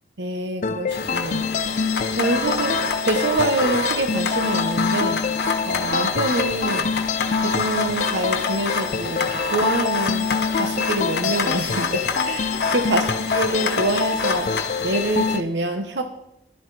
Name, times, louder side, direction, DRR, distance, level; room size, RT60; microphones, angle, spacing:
voice 1, 0.2-1.8 2.1-5.2 5.7-6.9 7.4-10.3 10.5-14.6 14.8-16.0, right 2 dB, 90° right, 6 dB, 1.1 m, -26 dB
sound 1, 0.6-15.4, left 5 dB, 45° left, 0.4 m, -26 dB
sound 2, 0.9-15.4, left 4 dB, 70° left, 1.2 m, -28 dB
12.5 x 12.0 x 4.1 m, 0.81 s
head